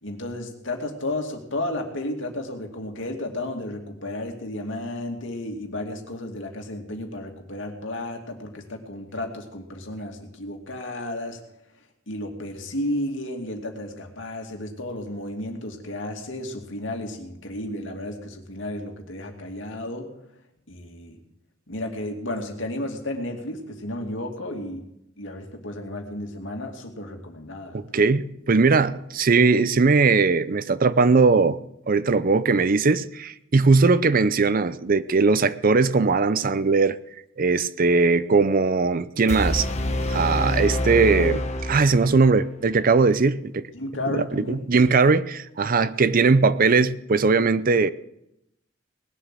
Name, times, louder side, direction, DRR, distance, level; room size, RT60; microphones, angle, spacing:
voice 1, 0.0-11.4 12.1-20.1 20.7-21.2 21.7-24.8 25.2-27.8 43.7-44.7, left 1 dB, 70° left, 2.5 m, -33 dB
voice 2, 27.7-31.6 31.9-37.0 37.4-39.7 40.1-43.7 44.1-47.9, right 4 dB, 45° right, 0.6 m, -20 dB
sound 1, 39.3-42.3, left 1 dB, 35° left, 1.3 m, -26 dB
20.0 x 7.7 x 7.6 m
head